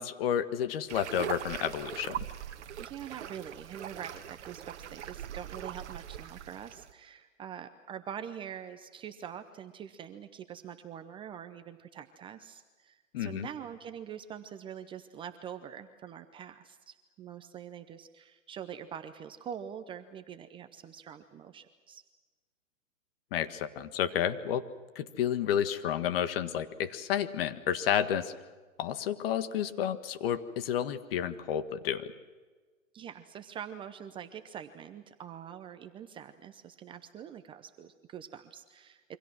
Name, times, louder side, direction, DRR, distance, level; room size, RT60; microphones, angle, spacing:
voice 1, 0.0-2.2 13.1-13.5 23.3-24.7 24.9-28.3 28.8-32.1, left 9 dB, 45° left, 10 dB, 1.7 m, -31 dB
sound 1, 0.9-6.9, right 10 dB, 60° right, 1.4 m, -41 dB
voice 2, 2.8-22.0 32.9-39.2, right 9 dB, 15° right, 9 dB, 0.7 m, -44 dB
28.0 x 25.0 x 6.1 m, 1.4 s
hypercardioid pair, 135°, 40 cm